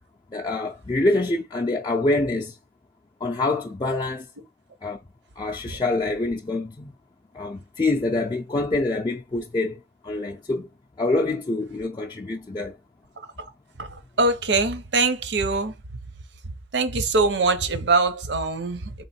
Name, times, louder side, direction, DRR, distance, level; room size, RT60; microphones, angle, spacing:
voice 1, 0.3-2.6 3.2-4.3 4.8-5.0 5.4-6.9 7.3-10.7 11.0-12.8, left 2 dB, 25° left, 0.4 m, -26 dB
voice 2, 14.2-15.7 16.7-18.9, right 3 dB, 80° right, 0.8 m, -22 dB
3.9 x 3.0 x 4.3 m
head